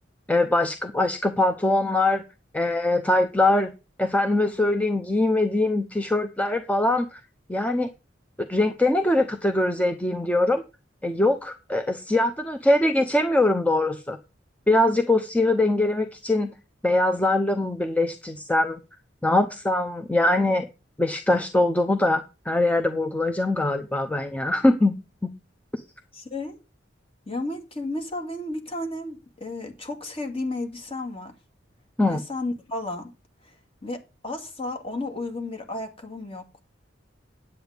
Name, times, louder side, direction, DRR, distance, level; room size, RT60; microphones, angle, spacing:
voice 1, 0.3-2.2 2.5-3.7 4.0-7.2 7.5-7.9 8.5-10.6 11.0-14.2 14.7-16.5 16.8-18.8 19.2-20.7 21.0-25.0 25.7-25.8 32.0-32.2, left 2 dB, 10° left, 7 dB, 0.7 m, -22 dB
voice 2, 26.1-26.6 27.3-31.3 32.1-33.1 33.5-33.6 33.8-36.4, left 2 dB, 30° left, 4 dB, 2.3 m, -33 dB
10.0 x 8.2 x 5.0 m, 0.29 s
head